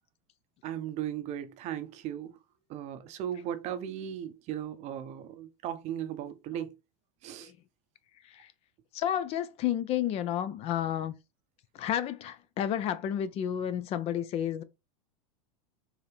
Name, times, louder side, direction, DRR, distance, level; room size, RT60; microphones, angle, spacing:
voice 1, 0.6-2.3 2.7-6.7 7.2-7.5, right 10 dB, 40° right, 0.6 m, -37 dB
voice 2, 8.9-11.2 11.7-14.6, left 10 dB, 35° left, 0.4 m, -31 dB
4.6 x 2.9 x 3.3 m
supercardioid pair, 130°, 17 cm